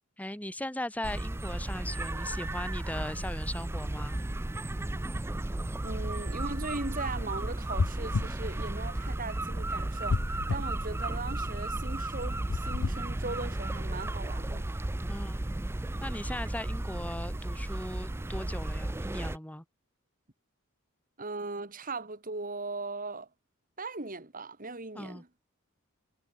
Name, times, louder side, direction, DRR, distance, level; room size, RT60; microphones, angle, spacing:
voice 1, 0.2-4.2 15.1-15.4 16.0-19.6 24.9-25.4, left 1 dB, 5° left, 1.8 m, -38 dB
sound 1, 1.0-19.4, right 1 dB, 10° right, 0.4 m, -34 dB
voice 2, 5.8-14.7 21.2-23.3 23.8-25.3, right 3 dB, 40° right, 2.4 m, -39 dB
sound 2, 7.8-8.4 10.1-10.7 12.5-13.0, left 3 dB, 75° left, 0.7 m, -29 dB
head